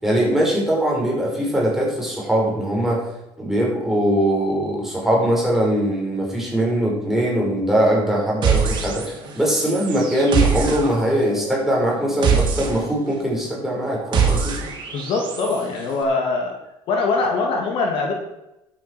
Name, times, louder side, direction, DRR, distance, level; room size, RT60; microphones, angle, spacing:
voice 1, 0.0-3.0 3.4-9.0 9.4-14.6, right 1 dB, 5° right, -4 dB, 5.2 m, -21 dB
sound 1, 8.4-9.3 9.6-15.6, right 6 dB, 50° right, 3.1 m, -24 dB
voice 2, 14.9-16.5 16.9-18.1, left 3 dB, 65° left, 1 dB, 3.0 m, -22 dB
12.0 x 8.3 x 6.3 m, 0.91 s
cardioid pair, 120°, 10 cm